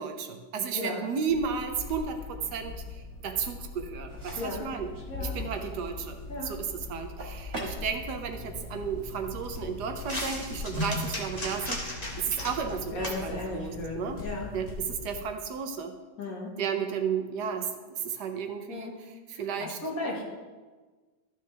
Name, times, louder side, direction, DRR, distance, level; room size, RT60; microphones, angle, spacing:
voice 1, 0.0-4.9 5.2-6.2 6.4-14.2 14.5-15.9 16.6-19.8 20.0-20.2, right 6 dB, 70° right, 6 dB, 1.3 m, -33 dB
voice 2, 0.7-1.0 4.4-4.7 5.1-5.4 6.3-6.5 12.9-14.5 16.2-16.6 18.7-19.0 19.3-20.2, left 2 dB, 55° left, -2 dB, 2.0 m, -35 dB
sound 1, 1.3-15.3, left 3 dB, 75° left, 1.9 m, -40 dB
sound 2, 4.1-10.0, right 2 dB, 50° right, 2.1 m, -45 dB
sound 3, 7.9-14.8, left 1 dB, 25° left, 1.4 m, -40 dB
13.0 x 6.7 x 3.3 m, 1.3 s
omnidirectional pair, 1.9 m